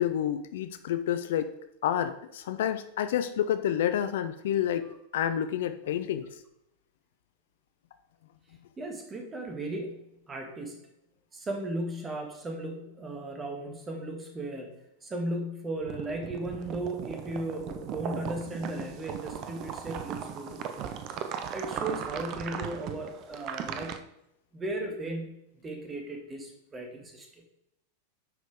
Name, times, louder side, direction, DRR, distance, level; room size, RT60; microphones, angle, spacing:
voice 1, 0.0-1.5 1.8-6.4, left 10 dB, 55° left, 10 dB, 0.5 m, -29 dB
voice 2, 8.8-10.8 11.3-14.7 15.0-20.7 21.5-24.0 24.5-25.3 25.6-27.3, right 1 dB, 15° right, 2 dB, 1.7 m, -36 dB
sound 1, 15.8-24.0, right 8 dB, 40° right, 0.6 m, -38 dB
9.5 x 5.1 x 3.6 m, 0.85 s
figure-of-eight pair, 90°, 0 cm